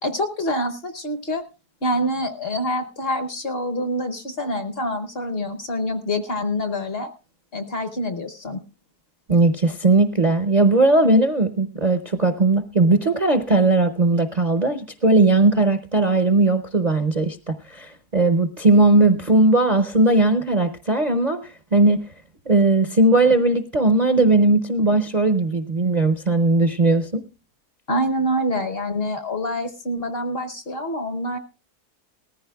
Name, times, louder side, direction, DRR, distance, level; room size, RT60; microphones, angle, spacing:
voice 1, 0.0-1.4 1.8-7.1 7.5-8.6 27.9-31.4, equal, 45° left, 7 dB, 1.0 m, -26 dB
voice 2, 9.3-22.0 22.5-27.2, right 2 dB, 40° right, 8 dB, 0.6 m, -18 dB
19.0 x 14.5 x 2.3 m, 0.30 s
omnidirectional pair, 1.6 m